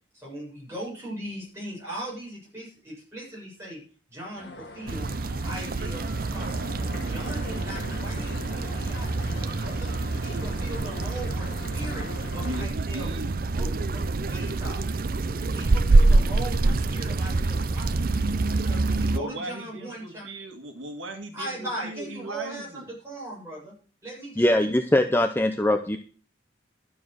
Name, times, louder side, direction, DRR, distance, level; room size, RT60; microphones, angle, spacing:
voice 1, 0.1-3.8 4.1-5.1 5.4-6.8 7.1-9.9 10.2-13.1 13.5-14.8 15.5-18.2 18.5-20.2 21.3-23.7 24.0-24.5, right 1 dB, 15° right, -5 dB, 7.6 m, -39 dB
sound 1, 4.3-12.6, left 2 dB, 55° left, 2.1 m, -42 dB
sound 2, 4.9-19.2, right 2 dB, 45° right, 0.5 m, -26 dB
voice 2, 12.4-13.4 19.1-22.9, right 1 dB, 75° right, 4 dB, 1.8 m, -38 dB
voice 3, 24.4-26.0, left 1 dB, 10° left, 7 dB, 0.6 m, -22 dB
12.0 x 7.2 x 6.3 m, 0.40 s
head